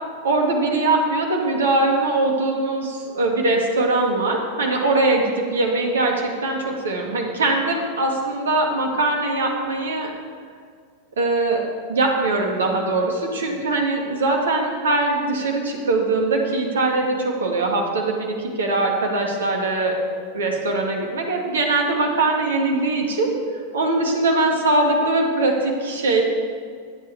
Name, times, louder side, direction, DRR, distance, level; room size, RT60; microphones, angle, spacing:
voice 1, 0.2-10.1 11.2-11.6 11.9-20.0 20.3-23.3 23.7-26.2, right 2 dB, 65° right, 1 dB, 2.1 m, -21 dB
22.5 x 8.5 x 3.5 m, 2.1 s
figure-of-eight pair, 90°, 0 cm